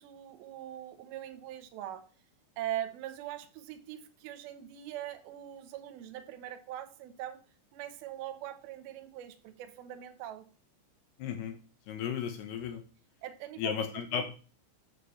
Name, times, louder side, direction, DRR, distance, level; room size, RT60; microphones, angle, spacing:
voice 1, 0.0-2.0 2.6-7.4 7.7-10.5 13.2-13.8 14.1-14.2, right 12 dB, 85° right, 7 dB, 2.1 m, -41 dB
voice 2, 11.2-11.6 11.9-12.8 13.6-14.2, left 8 dB, 85° left, 6 dB, 2.2 m, -34 dB
8.7 x 7.8 x 3.2 m, 0.37 s
omnidirectional pair, 5.9 m